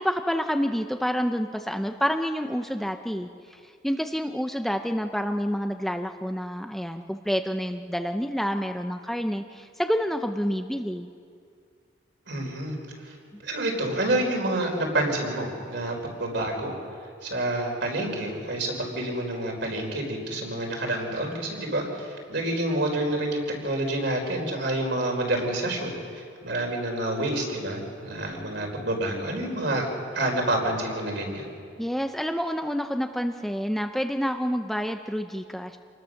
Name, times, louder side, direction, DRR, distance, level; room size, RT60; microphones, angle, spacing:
voice 1, 0.0-11.1 13.3-13.4 31.8-35.8, equal, ahead, 6 dB, 0.6 m, -28 dB
voice 2, 12.3-12.8 13.0-13.1 13.4-16.7 17.2-29.9 30.1-31.5, right 1 dB, 60° right, 1 dB, 4.5 m, -28 dB
27.5 x 20.5 x 6.5 m, 2.3 s
head